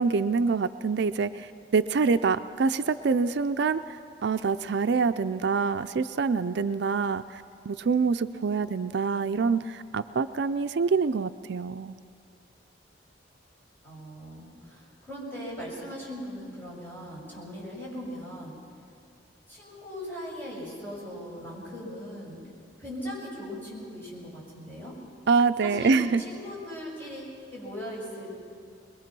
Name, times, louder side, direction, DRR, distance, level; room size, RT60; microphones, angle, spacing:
voice 1, 0.0-12.0 25.3-26.2, right 4 dB, 65° right, 11 dB, 0.4 m, -26 dB
voice 2, 13.8-18.6 19.5-22.4 22.8-24.9 25.6-28.3, equal, 10° left, -6 dB, 6.7 m, -39 dB
22.0 x 22.0 x 6.1 m, 2.4 s
head